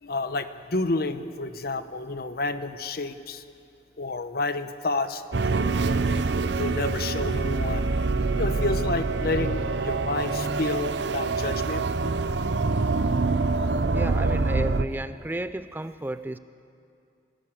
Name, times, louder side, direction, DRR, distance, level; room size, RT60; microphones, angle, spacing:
voice 1, 0.0-3.4 4.0-7.9 8.4-11.8, left 2 dB, 55° left, 10 dB, 1.0 m, -30 dB
sound 1, 5.3-14.8, right 3 dB, 75° right, 0.7 m, -25 dB
voice 2, 13.9-16.4, right 1 dB, 10° right, 12 dB, 0.4 m, -32 dB
24.5 x 16.5 x 7.2 m, 2.4 s
head